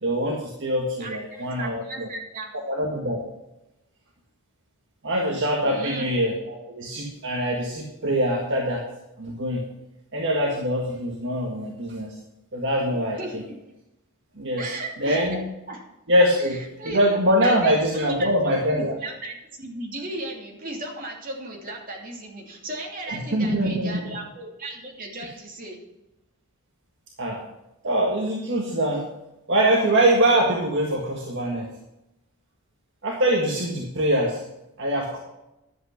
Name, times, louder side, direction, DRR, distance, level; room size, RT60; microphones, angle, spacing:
voice 1, 0.0-2.1 2.7-3.2 5.0-8.8 9.2-9.6 10.1-12.1 12.5-13.4 14.4-14.7 15.0-15.4 16.1-19.0 23.1-24.0 27.2-27.4 27.8-29.1 29.5-31.7 33.0-34.4 34.8-35.2, right 1 dB, 60° right, -1 dB, 1.7 m, -23 dB
voice 2, 1.0-2.5 5.6-6.1 13.1-13.5 14.6-15.2 15.7-15.8 16.3-17.0 17.4-17.7 18.2-25.8, right 2 dB, 40° right, -1 dB, 2.9 m, -36 dB
11.5 x 8.1 x 5.8 m, 0.92 s
head